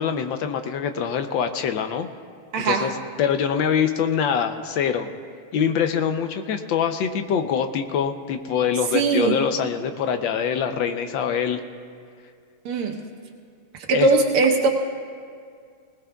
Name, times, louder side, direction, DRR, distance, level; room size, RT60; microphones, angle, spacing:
voice 1, 0.0-2.1 2.6-2.9 3.2-5.1 5.5-11.6 13.9-14.1, left 7 dB, 70° left, 8 dB, 1.3 m, -24 dB
voice 2, 2.5-2.9 8.9-9.4 12.7-13.0 13.7-14.7, right 3 dB, 85° right, 2 dB, 1.9 m, -20 dB
20.0 x 19.5 x 2.3 m, 2.2 s
omnidirectional pair, 2.4 m